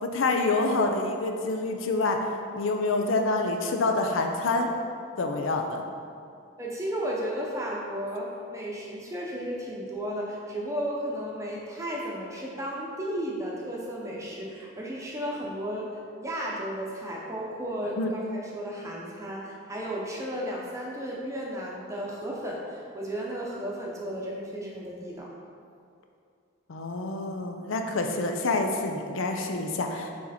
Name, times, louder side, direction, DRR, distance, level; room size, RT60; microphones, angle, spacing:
voice 1, 0.0-2.2 2.5-4.7 5.2-5.8 18.0-18.1 26.7-30.1, left 3 dB, 85° left, 4 dB, 0.6 m, -27 dB
voice 2, 6.6-25.3, equal, 15° right, -3 dB, 0.7 m, -34 dB
6.4 x 4.2 x 4.2 m, 2.4 s
head